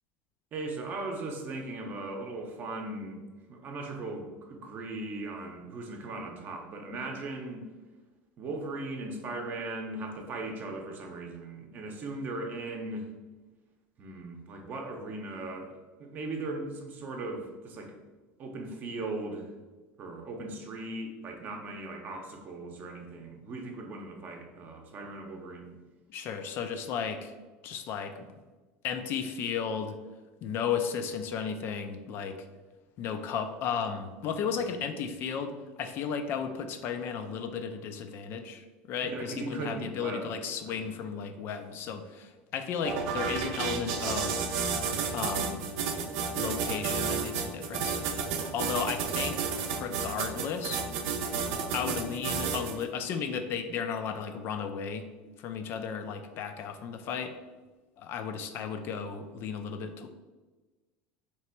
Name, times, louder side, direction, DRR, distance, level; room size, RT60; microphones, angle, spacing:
voice 1, 0.5-3.2 3.5-7.6 8.4-13.1 14.0-18.0 18.4-19.5 20.0-25.7 39.0-40.4 40.7-41.0, right 2 dB, 35° right, 3 dB, 0.7 m, -38 dB
voice 2, 26.1-27.3 27.6-28.3 28.8-30.0 30.4-32.5 33.0-44.5 45.1-45.7 46.3-48.0 48.5-50.8 51.7-55.1 55.4-57.3 58.0-60.1, left 7 dB, 50° left, 7 dB, 0.4 m, -34 dB
sound 1, 42.8-52.8, right 6 dB, 75° right, 0.6 m, -31 dB
3.3 x 3.0 x 4.4 m, 1.3 s
supercardioid pair, 135°, 5 cm